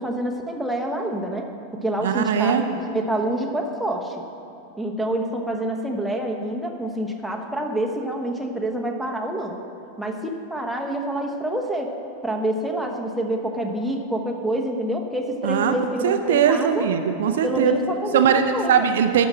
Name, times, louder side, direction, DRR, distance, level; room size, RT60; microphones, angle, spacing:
voice 1, 0.0-4.2 4.8-9.6 10.0-11.9 12.2-16.9 17.4-18.7, right 1 dB, ahead, 0 dB, 1.0 m, -27 dB
voice 2, 2.0-2.6 15.4-15.7 16.0-17.7 18.1-18.4 18.7-19.3, right 8 dB, 60° right, 7 dB, 0.5 m, -20 dB
12.0 x 5.5 x 7.6 m, 2.8 s
figure-of-eight pair, 90°, 0 cm